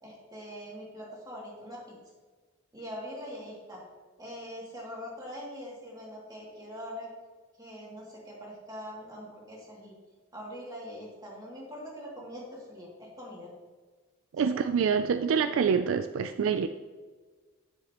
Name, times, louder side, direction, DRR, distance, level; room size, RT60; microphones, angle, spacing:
voice 1, 0.0-2.0 2.7-3.8 4.2-7.1 7.6-10.0 10.3-13.5 14.3-14.5, equal, 20° right, -4 dB, 2.4 m, -43 dB
voice 2, 14.4-16.7, right 6 dB, 60° right, 10 dB, 0.3 m, -26 dB
10.0 x 7.1 x 3.0 m, 1.4 s
head